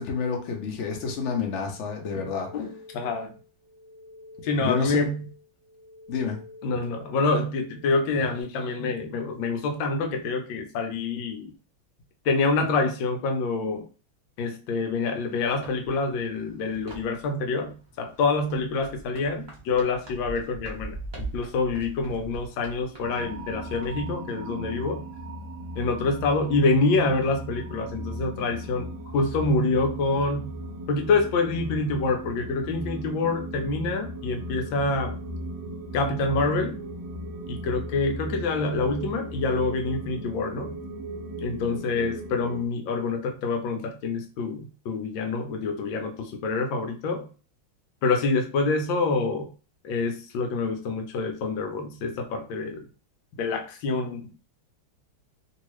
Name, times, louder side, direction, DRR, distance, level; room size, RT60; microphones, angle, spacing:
voice 1, 0.0-2.7 4.6-5.1 6.1-6.4, left 5 dB, 60° left, 2 dB, 0.7 m, -29 dB
sound 1, 1.6-8.4, left 2 dB, 25° left, 1.0 m, -49 dB
voice 2, 2.5-3.3 4.4-5.2 6.6-11.5 12.2-13.8 14.4-25.0 25.8-30.5 30.9-35.2 35.9-36.8 37.5-40.7 41.4-47.2 48.0-49.5 49.8-52.8 53.4-54.5, left 3 dB, 75° left, 4 dB, 1.3 m, -26 dB
sound 2, 15.1-24.0, right 2 dB, 25° right, 0.5 m, -43 dB
sound 3, 23.0-42.7, right 1 dB, 75° right, 1.0 m, -37 dB
2.9 x 2.8 x 3.0 m, 0.36 s
omnidirectional pair, 2.2 m